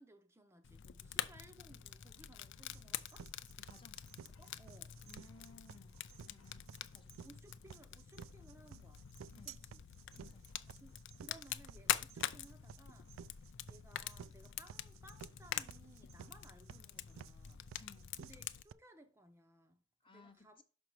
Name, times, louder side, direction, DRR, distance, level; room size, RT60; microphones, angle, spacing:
voice 1, 0.0-3.3 4.2-5.0 7.2-9.0 9.3-9.8 10.8-17.6 18.2-20.6, right 2 dB, 15° right, 0.6 m, -62 dB
Fire, 0.6-18.6, left 11 dB, 60° left, 0.4 m, -45 dB
sound 1, 1.9-7.4, left 1 dB, 75° left, 1.1 m, -68 dB
sound 2, 2.7-18.7, right 8 dB, 70° right, 0.3 m, -54 dB
voice 2, 3.7-4.0 5.1-6.0 6.2-6.6 6.9-7.3 9.3-9.6 10.1-10.6 17.8-18.1 20.0-20.6, left 3 dB, 25° left, 0.8 m, -61 dB
6.1 x 5.3 x 4.5 m
head